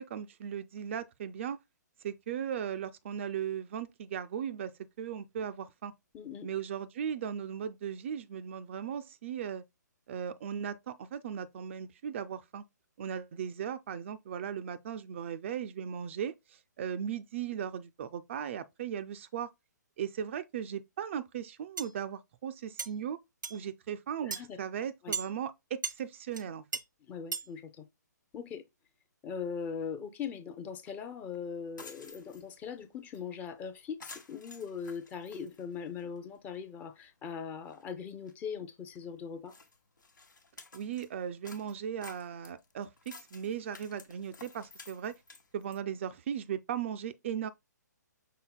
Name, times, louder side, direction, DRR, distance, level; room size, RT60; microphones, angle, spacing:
voice 1, 0.0-1.6 2.0-5.9 6.4-9.6 10.1-12.6 13.0-19.5 20.0-23.2 23.5-26.6 40.7-45.2 45.5-47.5, right 8 dB, 40° right, 0.3 m, -37 dB
voice 2, 6.1-6.5 24.3-24.6 25.0-25.1 27.1-27.9 28.3-28.6 29.2-39.5, left 6 dB, 15° left, 0.5 m, -40 dB
sound 1, 21.8-21.9 22.8-22.9 23.4-23.6 24.3-24.4 25.1-25.3 25.8-26.0 26.3-26.4 26.7-26.8 27.3-27.5, right 5 dB, 90° right, 0.7 m, -35 dB
sound 2, 30.8-30.9 31.3-31.4 31.7-32.7 33.1-33.2 33.5-33.7 34.0-36.2 36.5-36.6 37.2-37.3 37.6-37.8 38.3-38.4 38.9-39.0 39.5-41.1 41.4-45.8, left 3 dB, 85° left, 1.1 m, -52 dB
5.6 x 3.8 x 2.2 m
figure-of-eight pair, 135°, 10 cm